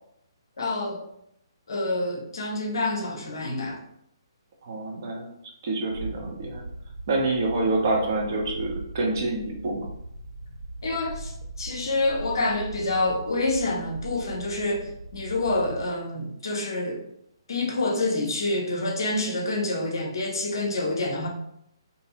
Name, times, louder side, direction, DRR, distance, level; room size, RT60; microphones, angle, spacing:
voice 1, 0.6-1.0 1.7-3.8 10.8-17.0 17.5-21.3, left 2 dB, 55° left, 1 dB, 0.6 m, -27 dB
voice 2, 4.6-5.3 5.6-6.6 7.1-9.9, right 2 dB, 45° right, 1 dB, 0.6 m, -27 dB
sound 1, 5.8-15.9, right 2 dB, 75° right, 1.2 m, -39 dB
2.7 x 2.3 x 2.8 m, 0.75 s
figure-of-eight pair, 130°, 3 cm